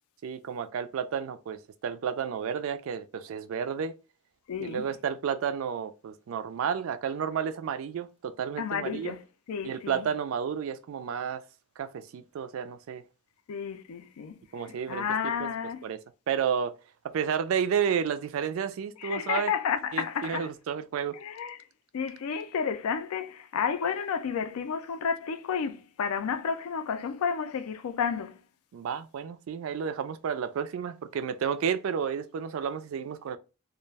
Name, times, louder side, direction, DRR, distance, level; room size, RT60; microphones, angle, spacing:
voice 1, 0.2-3.9 4.6-9.1 9.6-11.4 11.8-13.0 14.5-15.5 15.8-16.0 16.3-16.7 17.0-19.5 19.9-21.2 28.7-33.4, right 7 dB, 70° right, 0.3 m, -31 dB
voice 2, 4.5-4.9 8.6-9.2 9.5-10.1 13.5-14.4 14.7-15.8 19.0-20.5 21.1-21.6 21.9-28.4, left 6 dB, 85° left, 0.4 m, -31 dB
2.3 x 2.1 x 3.2 m
head